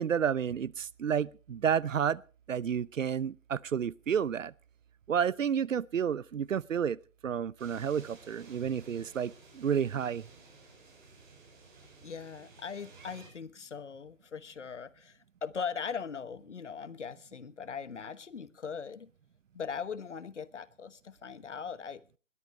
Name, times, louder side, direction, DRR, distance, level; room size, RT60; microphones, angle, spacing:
voice 1, 0.0-2.2 2.5-4.5 5.1-7.0 7.2-9.3 9.6-10.2, right 8 dB, 70° right, 0.7 m, -30 dB
sound 1, 7.6-13.3, right 3 dB, 35° right, 7.7 m, -55 dB
voice 2, 12.0-19.1 19.5-22.2, left 6 dB, 60° left, 1.2 m, -40 dB
20.5 x 14.5 x 3.1 m
hypercardioid pair, 175°, 39 cm